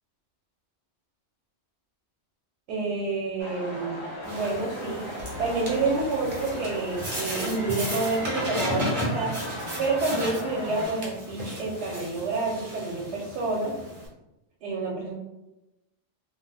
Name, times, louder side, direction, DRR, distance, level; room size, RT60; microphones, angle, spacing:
voice 1, 2.7-5.1 5.4-9.3 9.8-13.7 14.6-15.1, right 3 dB, 75° right, -3 dB, 0.9 m, -29 dB
sound 1, 3.4-10.9, left 1 dB, 40° left, 0.4 m, -37 dB
sound 2, 4.2-14.1, equal, 30° right, 0.7 m, -35 dB
sound 3, 5.2-10.5, left 2 dB, 70° left, 1.3 m, -46 dB
2.6 x 2.1 x 3.2 m, 0.94 s
omnidirectional pair, 1.3 m